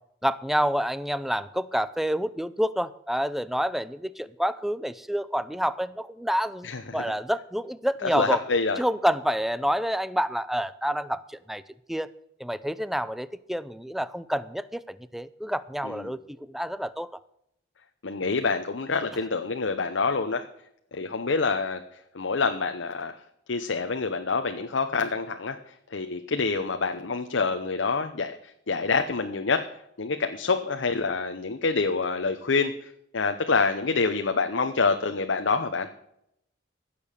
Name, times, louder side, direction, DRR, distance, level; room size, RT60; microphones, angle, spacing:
voice 1, 0.2-8.4 8.8-11.6 11.9-12.1 12.4-17.1, equal, ahead, 16 dB, 0.4 m, -28 dB
voice 2, 6.6-7.0 8.0-8.8 15.8-16.1 18.0-20.4 20.9-21.8 22.1-23.2 23.5-25.6 25.9-29.6 30.0-35.9, left 4 dB, 85° left, 7 dB, 0.8 m, -27 dB
15.5 x 7.0 x 6.7 m, 0.77 s
head